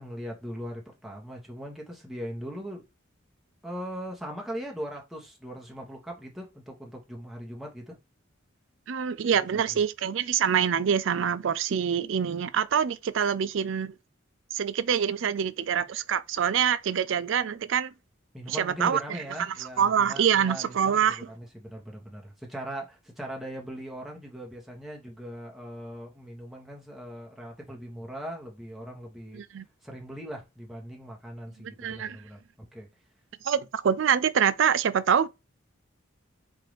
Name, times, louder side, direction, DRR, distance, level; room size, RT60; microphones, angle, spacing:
voice 1, 0.0-2.8 3.6-8.0 18.3-29.4 29.8-32.9, equal, ahead, 1.1 m, -40 dB
voice 2, 8.9-13.9 14.5-17.9 18.5-19.0 19.5-21.2 29.3-29.7 31.6-32.2 33.4-35.3, right 8 dB, 65° right, 0.4 m, -25 dB
4.7 x 2.6 x 3.1 m
head